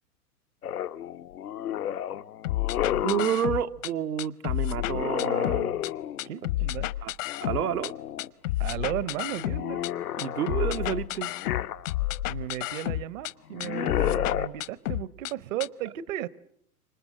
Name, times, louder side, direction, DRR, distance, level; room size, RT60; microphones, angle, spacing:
sound 1, 0.6-3.4 4.8-6.3 7.3-8.3 8.7-12.2 13.5-14.5, left 11 dB, 85° left, 1.1 m, -32 dB
sound 2, 2.4-3.9 4.2-5.9 6.2-7.9 8.2-9.9 10.2-13.3 13.6-15.3 15.6-15.7, left 16 dB, 60° left, 1.0 m, -30 dB
voice 1, 3.0-5.7 7.0-7.1 7.4-7.9 10.2-11.3, right 9 dB, 90° right, 1.1 m, -29 dB
voice 2, 6.2-6.9 8.6-9.8 12.3-16.3, right 12 dB, 60° right, 1.0 m, -35 dB
29.0 x 26.0 x 7.5 m
hypercardioid pair, 120°, 44 cm